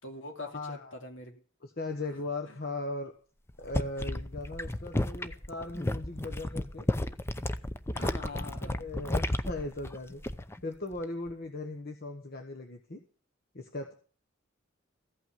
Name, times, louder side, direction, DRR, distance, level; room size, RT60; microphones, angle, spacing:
voice 1, 0.0-1.4 2.5-2.6 7.9-8.9, left 2 dB, 70° left, 3 dB, 2.7 m, -43 dB
voice 2, 0.5-1.0 1.6-3.1 3.6-6.9 8.3-10.2 10.6-13.0 13.5-13.9, left 2 dB, 50° left, 4 dB, 1.2 m, -38 dB
sound 1, 3.5-10.6 10.9-11.3, left 1 dB, 10° left, 0.6 m, -33 dB
15.0 x 5.8 x 9.3 m, 0.41 s
head